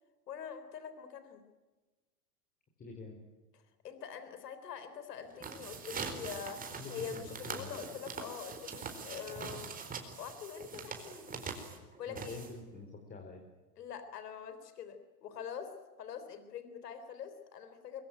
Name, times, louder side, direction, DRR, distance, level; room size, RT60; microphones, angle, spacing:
voice 1, 0.3-1.4 3.5-6.6 6.9-9.7 10.2-11.4 12.0-12.4 13.8-15.7 16.0-18.0, left 7 dB, 90° left, 9 dB, 3.8 m, -44 dB
voice 2, 2.8-3.2 6.6-7.8 12.1-13.4, left 3 dB, 20° left, 3 dB, 4.4 m, -47 dB
sound 1, 5.2-12.8, right 5 dB, 20° right, 4.4 m, -43 dB
23.0 x 22.5 x 9.1 m, 1.2 s
supercardioid pair, 130°, 46 cm